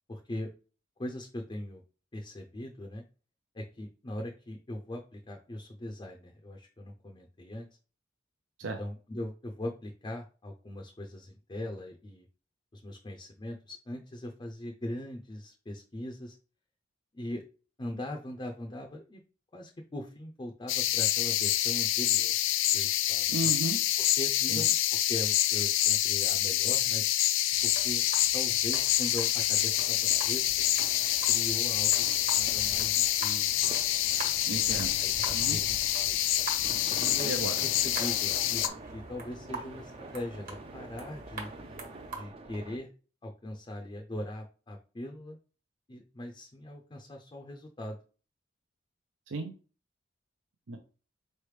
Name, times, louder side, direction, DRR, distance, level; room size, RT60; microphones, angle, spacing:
voice 1, 0.1-0.5 1.0-1.8 2.1-3.0 3.5-7.7 8.8-12.3 12.7-16.3 17.1-17.4 17.8-19.2 19.5-22.3 22.7-23.5 24.0-24.7 25.1-27.1 27.6-28.1 28.3-30.7 31.3-32.0 32.3-33.7 34.0-34.5 35.0-35.8 36.0-36.2 37.0-41.5 42.1-42.9 43.2-45.4 45.9-48.0, left 1 dB, 25° left, 2 dB, 0.5 m, -40 dB
sound 1, 20.7-38.7, left 13 dB, 80° left, 0.4 m, -27 dB
voice 2, 23.3-23.8 24.5-24.6 34.5-35.0 35.3-35.6 37.2-37.6 49.3-49.5 50.7-50.8, right 3 dB, 80° right, 5 dB, 0.6 m, -34 dB
sound 2, 27.5-42.2, right 3 dB, 50° right, 1.3 m, -45 dB
sound 3, 29.6-42.8, right 2 dB, 30° right, 0.5 m, -47 dB
4.2 x 3.2 x 3.2 m, 0.36 s
head